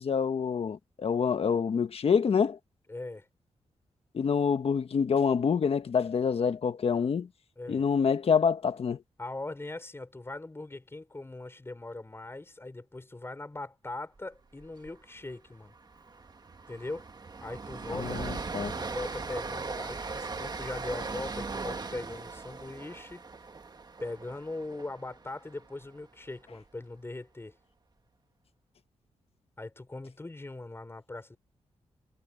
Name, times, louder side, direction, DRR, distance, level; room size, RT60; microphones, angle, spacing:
voice 1, 0.0-2.6 4.1-7.3 7.7-9.0 17.9-18.8, left 6 dB, 60° left, 1.4 m, -27 dB
voice 2, 2.9-3.3 7.6-7.8 9.2-15.7 16.7-17.1 17.4-18.2 18.8-23.2 24.0-27.6 29.6-31.4, left 2 dB, 20° left, 6.0 m, -40 dB
Train, 14.6-14.9 15.2-15.3 15.7-25.8, right 4 dB, 35° right, 1.6 m, -39 dB
cardioid pair, 90°, 11 cm